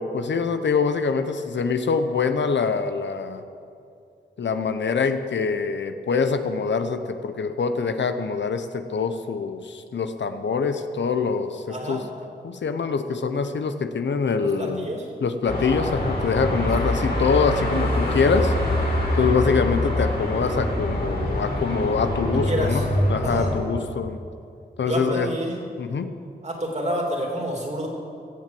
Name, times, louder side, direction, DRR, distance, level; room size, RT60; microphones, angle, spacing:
voice 1, 0.0-3.4 4.4-12.0 12.4-14.8 15.2-18.5 19.2-22.8 23.1-24.2 24.8-25.3 25.8-26.1, left 5 dB, 90° left, 9 dB, 0.8 m, -24 dB
voice 2, 11.7-12.0 14.6-15.0 22.5-22.8 23.2-23.5 24.8-25.6 26.4-27.9, right 1 dB, 40° right, 0 dB, 2.9 m, -28 dB
Car passing by / Traffic noise roadway noise / Engine, 15.4-23.6, left 1 dB, 60° left, 3.9 m, -25 dB
16.0 x 7.5 x 7.7 m, 2.5 s
wide cardioid pair, 75°, 18 cm